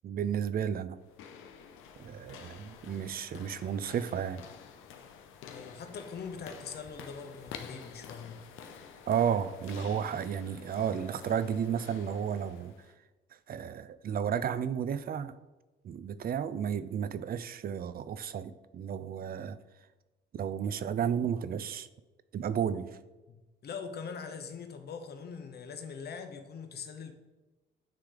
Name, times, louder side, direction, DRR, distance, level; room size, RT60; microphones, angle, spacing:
voice 1, 0.0-1.0 2.0-4.4 9.1-12.7 13.5-15.4 15.8-19.6 20.3-21.9 22.3-22.9, right 8 dB, 50° right, 14 dB, 0.4 m, -32 dB
sound 1, 1.0-12.9, left 7 dB, 90° left, 0.6 m, -49 dB
voice 2, 5.5-8.4 23.3-27.1, left 6 dB, 55° left, 7 dB, 0.9 m, -42 dB
8.8 x 3.3 x 3.8 m, 1.1 s
cardioid pair, 90°, 20 cm